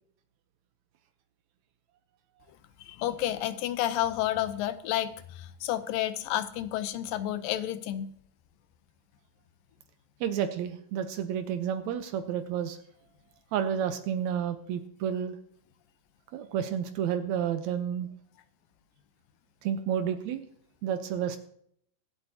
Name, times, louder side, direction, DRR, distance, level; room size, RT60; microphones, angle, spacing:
voice 1, 2.8-8.1, left 12 dB, 80° left, 12 dB, 2.3 m, -30 dB
voice 2, 10.2-12.8 13.5-15.4 16.3-18.1 19.6-20.4 20.8-21.4, right 8 dB, 85° right, 8 dB, 1.6 m, -30 dB
24.0 x 8.1 x 2.8 m, 0.66 s
omnidirectional pair, 4.2 m